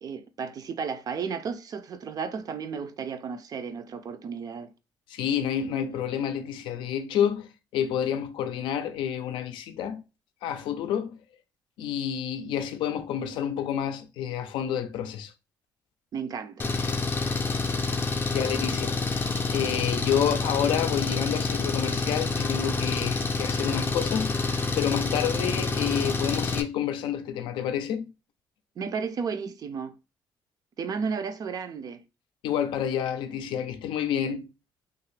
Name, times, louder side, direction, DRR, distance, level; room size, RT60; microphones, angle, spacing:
voice 1, 0.0-4.7 16.1-16.7 28.8-29.9 30.8-32.0, right 6 dB, 50° right, 0.4 m, -33 dB
voice 2, 5.1-10.0 10.4-11.2 11.8-15.3 18.3-28.1 32.4-34.5, left 9 dB, 85° left, 0.4 m, -29 dB
Engine, 16.6-26.6, left 3 dB, 25° left, 0.4 m, -28 dB
2.7 x 2.4 x 3.1 m
cardioid pair, 90°, 8 cm